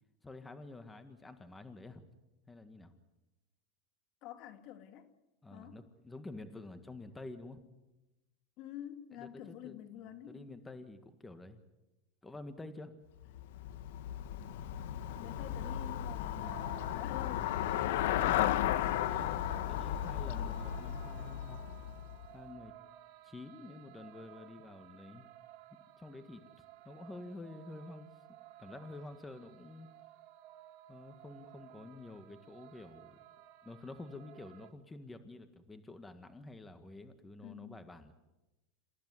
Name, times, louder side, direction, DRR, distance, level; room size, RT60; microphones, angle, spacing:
voice 1, 0.2-2.0 2.5-2.9 5.4-7.6 9.2-9.8 10.3-11.6 12.2-13.0 19.1-21.6 22.3-22.7 23.2-25.3 26.0-26.4 26.8-28.1 28.6-29.9 30.9-33.2 33.6-38.1, left 2 dB, 10° left, 9 dB, 1.8 m, -49 dB
voice 2, 4.2-5.1 5.5-5.8 8.6-10.5 15.2-17.7 37.4-37.8, left 11 dB, 50° left, 8 dB, 2.5 m, -48 dB
Traffic noise roadway noise / Bicycle, 13.2-22.4, left 12 dB, 75° left, 1.5 m, -35 dB
sound 1, 16.4-34.7, right 13 dB, 60° right, 2.0 m, -56 dB
28.0 x 15.0 x 9.8 m, 1.0 s
supercardioid pair, 125°, 0 cm